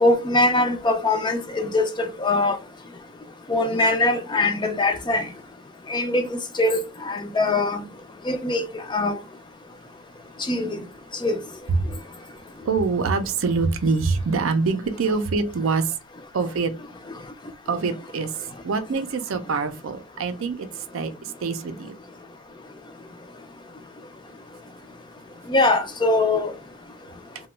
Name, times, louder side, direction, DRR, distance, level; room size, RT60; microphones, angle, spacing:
voice 1, 0.0-2.6 3.5-5.2 5.9-7.8 8.3-8.6 8.9-9.2 10.5-10.8 11.2-11.4 25.5-26.5, left 2 dB, 20° left, 0.4 m, -22 dB
voice 2, 12.6-15.9 16.3-16.7 17.7-18.3 18.6-22.0, right 4 dB, 70° right, 0.4 m, -25 dB
2.9 x 2.1 x 3.2 m
head